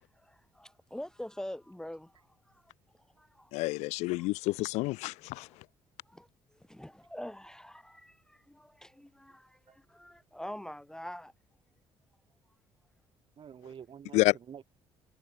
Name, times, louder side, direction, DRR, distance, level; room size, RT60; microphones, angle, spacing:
voice 1, 0.2-3.5 4.2-4.3 5.4-5.5 6.1-11.3, left 1 dB, 5° left, 1.2 m, -45 dB
voice 2, 3.5-5.5 14.1-14.3, left 22 dB, 90° left, 0.8 m, -29 dB
voice 3, 13.4-14.6, right 8 dB, 50° right, 4.4 m, -49 dB
cardioid pair, 85°, 11 cm